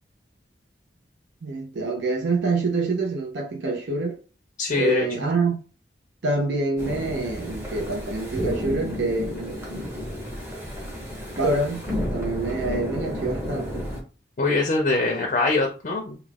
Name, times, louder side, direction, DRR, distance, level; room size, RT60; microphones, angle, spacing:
voice 1, 1.4-4.2 4.7-5.6 6.2-9.9 11.4-11.8 12.1-13.9, right 3 dB, 80° right, 0.6 m, -26 dB
voice 2, 4.6-5.3 14.4-16.2, left 2 dB, 45° left, 0.5 m, -23 dB
sound 1, 6.8-14.0, left 1 dB, 15° right, 0.7 m, -32 dB
2.3 x 2.3 x 3.4 m
head